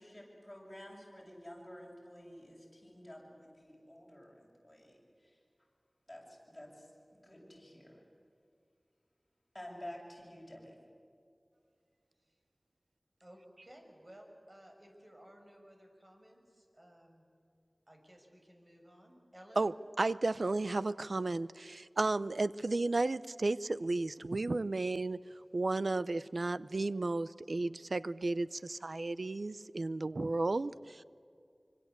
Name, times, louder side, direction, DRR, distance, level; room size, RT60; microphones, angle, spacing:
voice 1, 0.0-5.4 6.1-8.0 9.5-10.8, equal, 15° left, -3 dB, 7.8 m, -51 dB
voice 2, 13.2-17.3 17.9-19.7, equal, 40° right, 3 dB, 6.0 m, -57 dB
voice 3, 20.0-25.2 25.5-31.0, right 2 dB, 85° right, 16 dB, 0.6 m, -33 dB
25.5 x 25.0 x 8.2 m, 2.4 s
wide cardioid pair, 45°, 0 cm